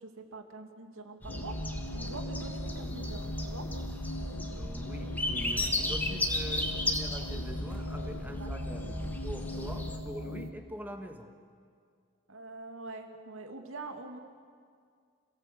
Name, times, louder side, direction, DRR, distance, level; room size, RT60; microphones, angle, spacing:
voice 1, 0.0-1.5 1.9-3.7 8.4-9.2 9.7-9.8 10.2-10.4 12.3-14.2, right 2 dB, 75° right, 4 dB, 2.4 m, -45 dB
sound 1, 1.2-10.0, left 1 dB, 10° left, 1.5 m, -35 dB
sound 2, 1.3-10.5, left 1 dB, 70° left, 1.3 m, -40 dB
voice 2, 4.5-8.9 9.2-11.3, equal, 10° right, 4 dB, 1.6 m, -44 dB
27.5 x 17.5 x 8.2 m, 2.1 s
head